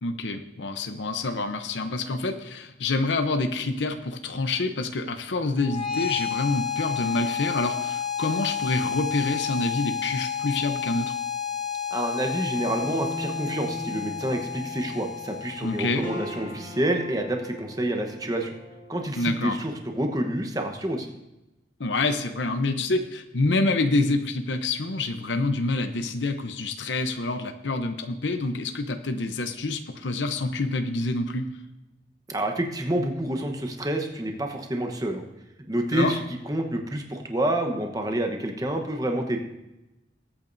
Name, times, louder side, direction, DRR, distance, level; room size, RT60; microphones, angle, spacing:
voice 1, 0.0-11.1 15.6-16.0 19.2-19.6 21.8-31.4 35.9-36.2, left 2 dB, 85° left, 7 dB, 0.8 m, -27 dB
sound 1, 5.6-16.6, left 8 dB, 40° left, 2.3 m, -31 dB
voice 2, 11.9-18.5 18.9-21.1 32.3-35.2 35.7-39.4, right 1 dB, 20° right, 4 dB, 1.0 m, -28 dB
sound 2, 12.8-19.0, equal, 10° left, 3.8 m, -40 dB
20.0 x 8.7 x 2.7 m, 0.97 s
head